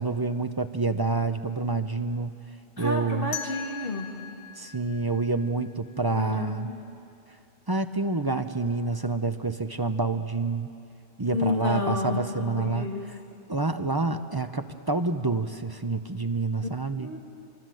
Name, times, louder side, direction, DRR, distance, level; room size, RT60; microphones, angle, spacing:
voice 1, 0.0-2.3 2.8-3.3 4.6-6.7 7.7-10.7 11.2-13.2 13.5-17.1, right 3 dB, 25° right, 8 dB, 0.7 m, -28 dB
voice 2, 2.8-4.1 6.1-6.8 11.3-13.0 16.6-16.7 16.9-17.2, left 2 dB, 50° left, -1 dB, 2.7 m, -30 dB
sound 1, 3.3-6.2, left 8 dB, 70° left, 1.7 m, -40 dB
28.0 x 24.5 x 7.8 m, 2.6 s
omnidirectional pair, 1.2 m